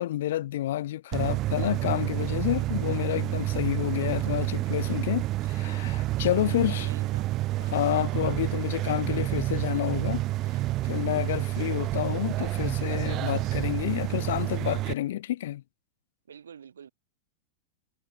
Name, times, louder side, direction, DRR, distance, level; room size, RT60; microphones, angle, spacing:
voice 1, 0.0-6.9 7.7-10.2 10.5-15.6, left 13 dB, 55° left, 0.5 m, -29 dB
sound 1, 1.1-14.9, right 16 dB, 35° right, 0.4 m, -29 dB
voice 2, 6.4-7.3 16.3-16.9, right 8 dB, 70° right, 1.0 m, -46 dB
figure-of-eight pair, 90°, 0 cm